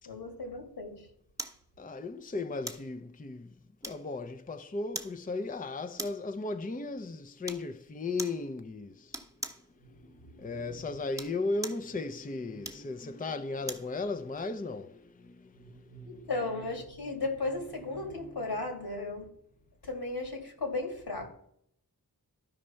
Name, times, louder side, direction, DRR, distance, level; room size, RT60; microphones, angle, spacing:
voice 1, 0.1-1.1 9.9-10.9 15.6-19.3 19.8-21.3, left 2 dB, 80° left, 2.4 m, -36 dB
sound 1, 1.4-1.6 2.7-2.9 3.8-4.3 4.9-5.2 6.0-6.3 7.4-7.7 8.2-8.4 9.1-9.7 11.0-11.9 12.6-13.9 14.4-14.5, right 1 dB, 10° right, 1.1 m, -40 dB
voice 2, 1.8-9.2 10.0-16.3, left 3 dB, 20° left, 0.6 m, -36 dB
13.0 x 5.0 x 4.4 m
cardioid pair, 45°, 38 cm